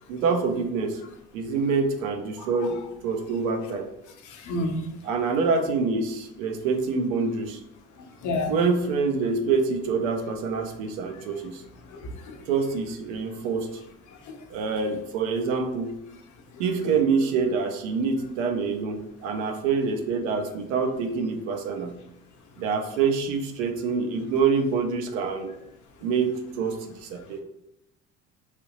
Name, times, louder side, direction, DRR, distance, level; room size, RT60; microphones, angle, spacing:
voice 1, 0.1-1.0 1.3-3.9 5.0-7.6 8.5-11.6 12.5-13.8 14.5-16.0 16.6-22.0 22.6-25.5 26.0-27.4, right 5 dB, 85° right, 5 dB, 0.6 m, -26 dB
voice 2, 4.3-4.8 8.2-8.5 11.9-12.4 14.3-14.4, left 2 dB, 50° left, 4 dB, 0.8 m, -30 dB
3.3 x 2.7 x 2.9 m, 0.84 s
hypercardioid pair, 75°, 38 cm